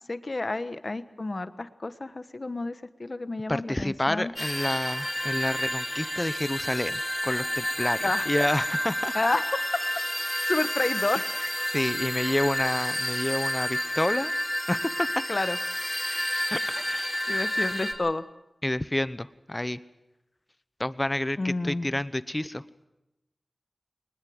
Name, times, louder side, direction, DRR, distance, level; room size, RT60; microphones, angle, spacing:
voice 1, 0.1-4.3 8.0-8.3 9.1-9.5 10.5-11.3 15.3-15.6 17.3-18.2 21.4-21.9, left 2 dB, 50° left, 11 dB, 1.3 m, -30 dB
voice 2, 3.5-9.1 11.2-11.3 11.7-14.3 14.7-15.2 16.5-17.2 18.6-19.8 20.8-22.6, left 1 dB, 25° left, 15 dB, 1.0 m, -29 dB
sound 1, 4.4-17.9, equal, 10° left, 4.2 m, -30 dB
21.0 x 20.0 x 7.9 m, 0.95 s
cardioid pair, 45°, 0 cm